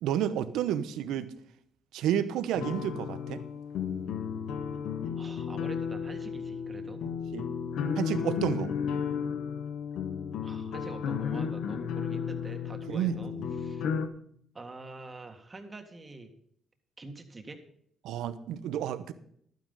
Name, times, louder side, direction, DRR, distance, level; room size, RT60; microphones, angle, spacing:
voice 1, 0.0-1.3 1.9-3.4 7.3-7.5 8.0-8.7 12.9-13.7 18.0-19.1, right 10 dB, 90° right, 12 dB, 0.9 m, -31 dB
sound 1, 2.5-14.1, left 7 dB, 85° left, 1.0 m, -33 dB
voice 2, 5.2-7.0 10.4-13.8 14.5-16.3 17.0-17.6, right 3 dB, 25° right, 5 dB, 1.8 m, -46 dB
12.0 x 9.3 x 5.4 m, 0.66 s
cardioid pair, 90°, 0 cm